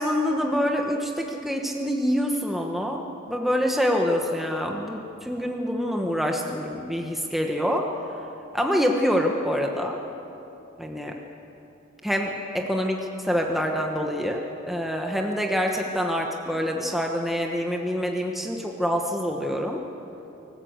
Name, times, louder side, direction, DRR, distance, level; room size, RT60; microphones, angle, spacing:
voice 1, 0.0-3.0 3.3-7.9 8.5-10.0 10.8-11.2 12.0-19.8, equal, ahead, 1 dB, 1.1 m, -26 dB
25.0 x 14.5 x 8.1 m, 2.9 s
head